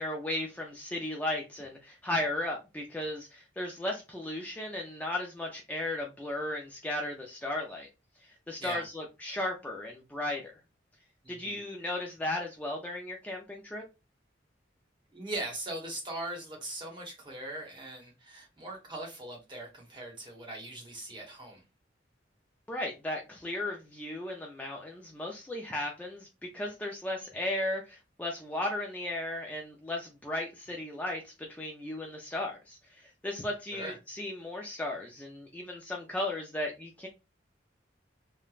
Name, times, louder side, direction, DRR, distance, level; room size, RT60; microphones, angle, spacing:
voice 1, 0.0-7.9 8.2-10.5 11.3-13.8 22.7-37.1, left 1 dB, 10° left, 0.3 m, -35 dB
voice 2, 15.1-21.6 33.7-34.0, right 1 dB, 25° right, 0.9 m, -40 dB
3.1 x 2.1 x 2.3 m
head